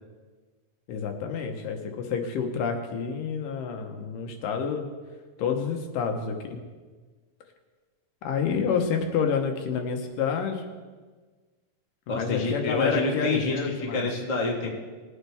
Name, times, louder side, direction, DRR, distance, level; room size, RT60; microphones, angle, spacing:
voice 1, 0.9-4.9 5.4-6.6 8.2-10.6 12.1-14.1, left 6 dB, 80° left, 4 dB, 2.7 m, -28 dB
voice 2, 12.1-14.7, left 2 dB, 30° left, -1 dB, 0.7 m, -28 dB
20.5 x 8.7 x 3.4 m, 1.4 s
omnidirectional pair, 3.8 m